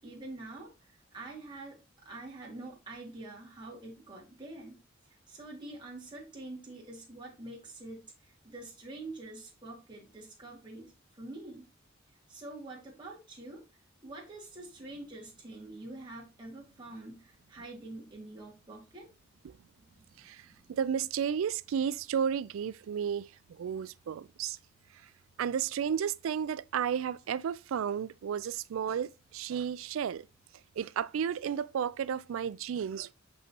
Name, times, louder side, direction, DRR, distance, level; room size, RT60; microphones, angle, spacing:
voice 1, 0.0-4.8 5.3-10.9 11.2-11.7 12.3-13.6 14.0-19.1 19.8-20.8, right 2 dB, 25° right, 2.1 m, -46 dB
voice 2, 20.2-23.3 23.6-24.6 25.4-30.2 30.8-33.1, right 8 dB, 75° right, 0.3 m, -33 dB
6.4 x 5.4 x 2.9 m
head